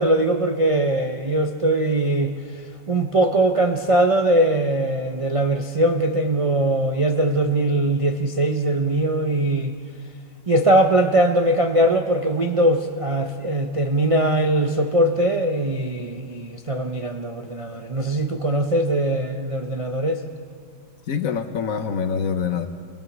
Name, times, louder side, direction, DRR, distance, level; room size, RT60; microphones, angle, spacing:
voice 1, 0.0-2.3 2.9-9.7 10.5-20.2, right 1 dB, 35° right, 4 dB, 0.5 m, -21 dB
voice 2, 21.1-22.7, left 6 dB, 60° left, 9 dB, 1.2 m, -25 dB
25.0 x 18.0 x 6.2 m, 2.4 s
omnidirectional pair, 1.8 m